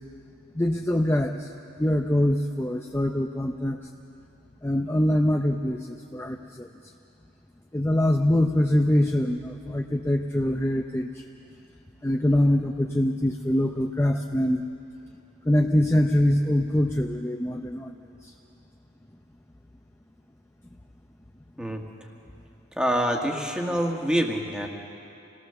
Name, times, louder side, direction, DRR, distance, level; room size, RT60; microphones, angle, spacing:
voice 1, 0.6-1.5 1.8-3.8 4.6-6.7 7.7-11.2 12.0-14.6 15.5-17.9, left 1 dB, 10° left, 3 dB, 0.6 m, -24 dB
voice 2, 22.8-24.7, equal, 5° right, 1 dB, 1.7 m, -26 dB
27.5 x 18.0 x 6.9 m, 2.7 s
head